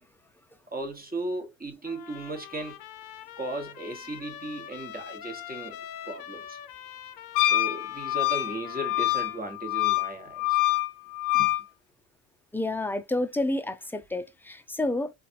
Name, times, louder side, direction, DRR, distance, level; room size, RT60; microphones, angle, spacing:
voice 1, 0.7-2.8 3.4-5.8 6.0-6.6 7.4-10.6 11.3-11.5, right 2 dB, 20° right, 1.5 m, -36 dB
Trumpet, 1.8-9.4, left 11 dB, 50° left, 0.6 m, -44 dB
Wind instrument woodwind instrument, 7.4-11.6, left 18 dB, 90° left, 0.5 m, -26 dB
voice 2, 12.5-15.1, left 2 dB, 5° left, 0.6 m, -29 dB
3.9 x 2.5 x 2.7 m
hypercardioid pair, 65°, 47 cm